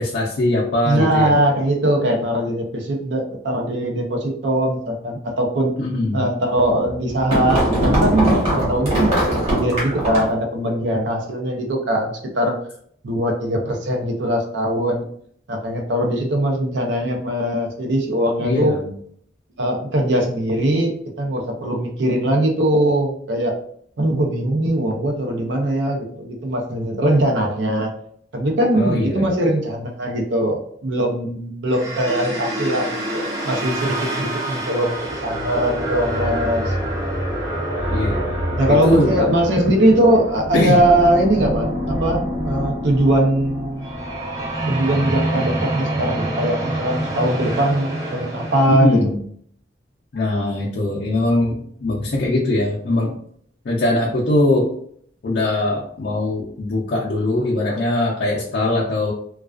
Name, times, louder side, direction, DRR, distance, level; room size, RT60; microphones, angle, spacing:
voice 1, 0.0-1.3 5.8-6.2 18.4-18.9 28.7-29.3 37.9-38.4 38.7-39.1 40.5-40.8 48.7-49.2 50.1-53.1 53.6-54.7 55.2-59.1, left 1 dB, 60° left, -5 dB, 0.5 m, -21 dB
voice 2, 0.8-5.7 6.1-12.6 13.0-15.0 15.5-18.8 19.6-23.6 24.0-27.9 28.3-36.8 38.6-43.9 44.7-49.0, right 1 dB, 75° right, 1 dB, 0.5 m, -21 dB
sound 1, 6.6-10.4, equal, 35° right, 1.1 m, -20 dB
sound 2, 31.7-48.7, right 1 dB, 20° right, 0.6 m, -26 dB
2.3 x 2.3 x 2.3 m, 0.63 s
head